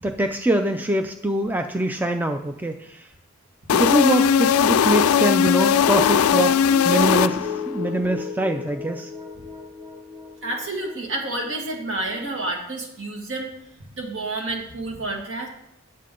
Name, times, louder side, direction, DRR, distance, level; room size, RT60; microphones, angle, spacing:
voice 1, 0.0-3.0 3.7-6.6 6.8-9.1, right 1 dB, 10° right, 5 dB, 0.4 m, -24 dB
sound 1, 3.7-7.8, left 8 dB, 80° left, 0.3 m, -18 dB
sound 2, 6.0-12.5, left 4 dB, 30° right, 1.5 m, -36 dB
voice 2, 10.4-13.5 13.9-15.5, right 2 dB, 60° right, 1 dB, 2.0 m, -29 dB
9.5 x 7.4 x 3.8 m, 0.81 s
head